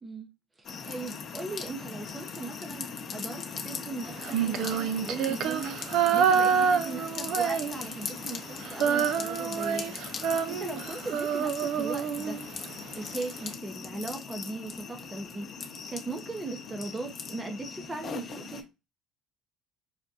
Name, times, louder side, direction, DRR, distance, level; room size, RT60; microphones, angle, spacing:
voice 1, 0.0-0.3 0.6-12.4 12.9-18.7, right 3 dB, 20° right, 0.7 m, -39 dB
sound 1, 0.6-18.6, left 5 dB, 45° left, 0.7 m, -40 dB
Female singing, 4.2-8.1 8.4-12.7, right 7 dB, 60° right, 0.4 m, -27 dB
4.8 x 2.1 x 2.7 m
hypercardioid pair, 60°, 0 cm